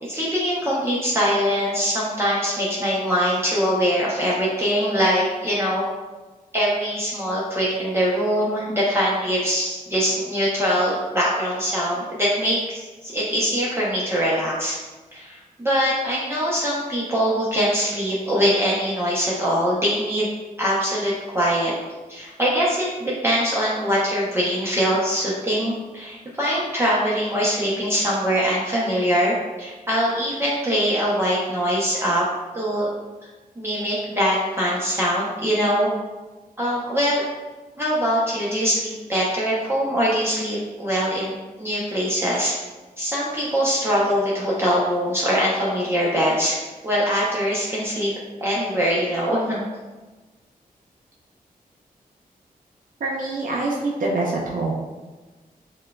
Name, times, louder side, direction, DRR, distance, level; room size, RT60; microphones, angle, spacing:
voice 1, 0.0-5.8 6.5-14.8 15.1-20.3 20.6-21.7 22.1-32.3 32.5-32.9 33.6-35.9 36.6-37.2 37.8-42.5 43.0-48.1 48.4-49.6, equal, 15° right, -6 dB, 0.7 m, -23 dB
voice 2, 53.0-54.7, right 2 dB, 60° right, -4 dB, 0.6 m, -25 dB
5.5 x 2.3 x 2.3 m, 1.2 s
cardioid pair, 70°, 16 cm